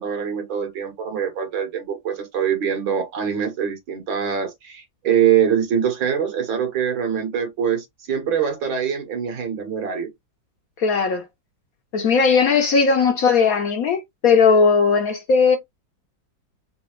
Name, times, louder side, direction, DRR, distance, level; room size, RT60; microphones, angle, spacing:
voice 1, 0.0-10.1, right 8 dB, 90° right, 2.2 m, -23 dB
voice 2, 10.8-11.2 11.9-15.6, left 5 dB, 65° left, 0.9 m, -17 dB
4.2 x 2.7 x 3.1 m
omnidirectional pair, 2.1 m